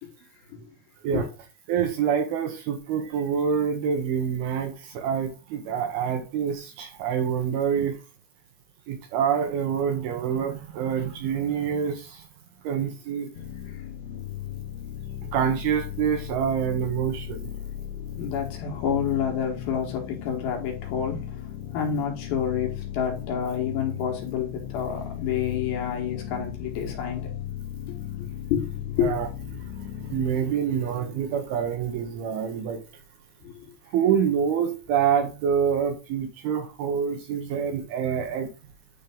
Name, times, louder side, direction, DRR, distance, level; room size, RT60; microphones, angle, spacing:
voice 1, 1.7-8.0 8.9-12.3 12.6-13.3 15.2-17.5 29.0-29.3 29.5-32.8 33.9-38.5, right 7 dB, 80° right, 2.4 m, -26 dB
sound 1, 13.3-30.3, left 10 dB, 85° left, 2.3 m, -36 dB
voice 2, 18.2-21.4 21.7-27.3 27.9-29.2 33.4-33.8, left 8 dB, 70° left, 2.8 m, -29 dB
9.8 x 3.4 x 3.5 m
omnidirectional pair, 5.0 m